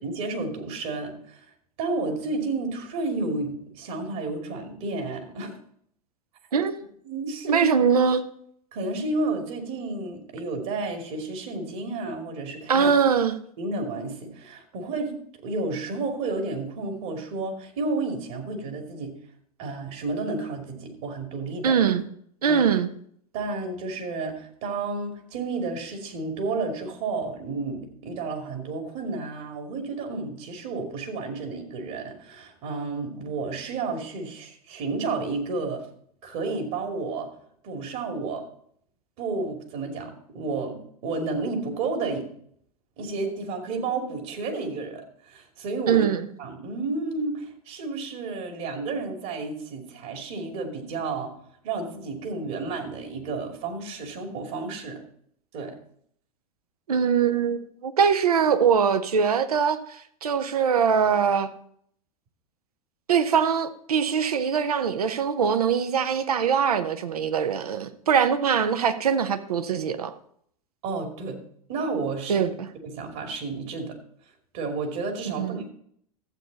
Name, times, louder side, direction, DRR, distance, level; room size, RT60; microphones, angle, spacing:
voice 1, 0.0-1.4 1.8-5.6 7.1-7.7 8.7-12.9 13.6-15.2 15.4-19.1 19.6-21.7 22.5-22.6 23.3-35.8 36.2-37.3 37.6-38.5 39.2-42.3 43.0-46.1 46.4-51.3 51.6-55.0 55.5-55.8 70.8-71.4 71.7-72.4 72.8-74.0 74.5-75.7, right 3 dB, 55° right, 2.5 m, -31 dB
voice 2, 6.5-6.8 7.5-8.2 12.7-13.3 21.6-22.0 22.4-22.9 45.9-46.3 56.9-59.8 60.2-61.5 63.1-70.1 72.3-72.7 75.4-75.6, right 7 dB, 80° right, 0.8 m, -22 dB
12.5 x 8.1 x 4.0 m
hypercardioid pair, 95°, 19 cm